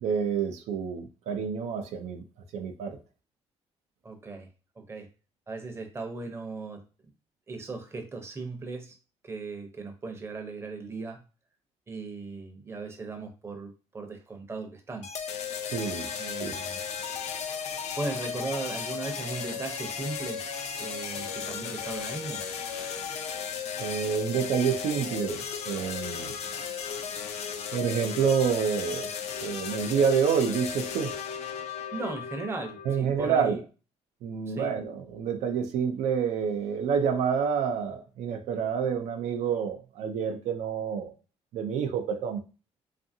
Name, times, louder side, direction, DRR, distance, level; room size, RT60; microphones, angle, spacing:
voice 1, 0.0-2.2 2.5-3.0 15.7-16.1 16.4-16.5 23.8-26.3 27.7-29.1 29.4-31.2 32.9-33.6 34.2-41.1 41.5-42.4, right 7 dB, 85° right, 0.4 m, -28 dB
voice 2, 4.0-4.5 4.8-5.1 5.5-6.8 7.5-9.0 9.2-11.2 11.9-15.1 16.2-16.8 18.0-20.4 20.8-22.4 31.9-33.6 34.5-34.7, right 3 dB, 20° right, 0.6 m, -37 dB
sound 1, 15.0-33.0, left 7 dB, 75° left, 0.4 m, -35 dB
2.7 x 2.5 x 2.6 m
cardioid pair, 125°, 11 cm